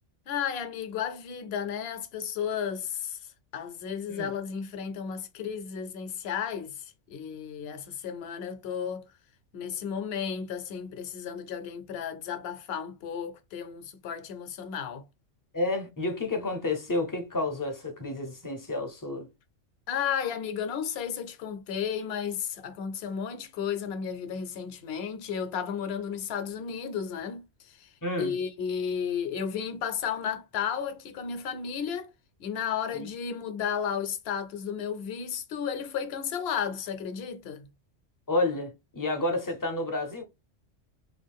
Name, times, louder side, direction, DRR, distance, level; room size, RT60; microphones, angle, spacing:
voice 1, 0.3-3.2 3.5-9.1 9.5-15.0 19.9-27.9 28.2-32.1 32.4-37.7, left 7 dB, 60° left, 0.8 m, -33 dB
voice 2, 15.5-19.3 28.0-28.4 32.9-33.1 38.3-40.2, left 2 dB, 25° left, 0.5 m, -30 dB
3.1 x 2.4 x 3.4 m
omnidirectional pair, 1.3 m